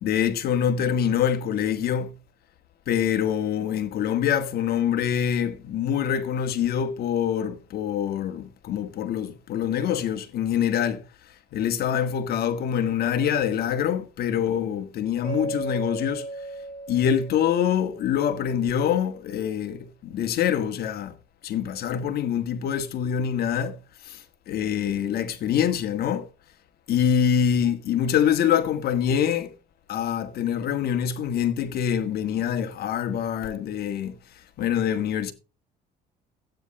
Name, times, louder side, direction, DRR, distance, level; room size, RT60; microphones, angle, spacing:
voice 1, 0.0-2.1 2.9-11.0 11.5-16.3 16.9-21.2 21.4-23.8 24.0-26.3 26.9-29.5 29.9-34.1 34.6-35.3, left 8 dB, 65° left, 1.7 m, -25 dB
Mallet percussion, 15.2-18.2, right 2 dB, 15° right, 5.3 m, -35 dB
12.5 x 9.2 x 4.2 m
cardioid pair, 110°, 17 cm